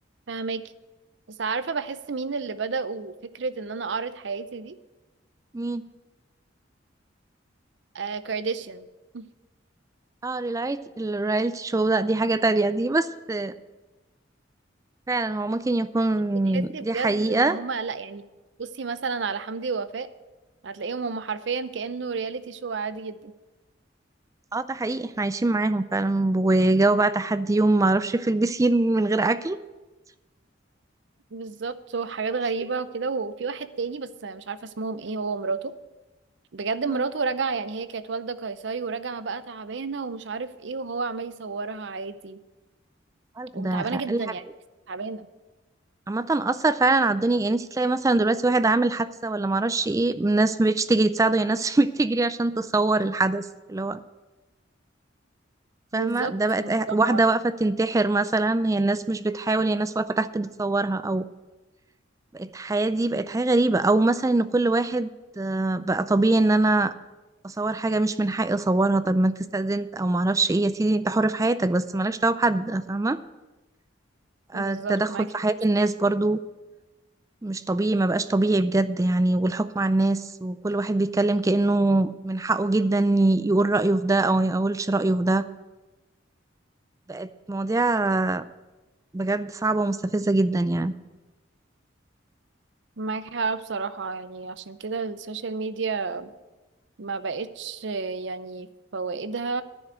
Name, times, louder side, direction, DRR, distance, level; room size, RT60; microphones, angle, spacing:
voice 1, 0.3-0.6 1.3-4.8 7.9-8.9 9.1-9.3 16.5-18.2 18.6-20.1 20.6-23.3 31.3-35.7 36.5-42.4 43.5-44.4 44.9-45.3 55.9-56.3 56.6-57.4 74.5-75.3 93.0-96.3 97.0-99.6, right 4 dB, 65° right, 13 dB, 0.6 m, -31 dB
voice 2, 10.2-13.5 15.1-17.6 24.5-29.6 36.9-37.0 43.4-44.2 46.1-54.0 55.9-61.2 62.3-65.1 65.4-66.9 67.4-73.2 74.5-76.4 77.4-85.4 87.1-88.4 89.1-90.9, right 2 dB, 15° right, 14 dB, 0.3 m, -23 dB
10.5 x 6.3 x 8.0 m, 1.1 s
head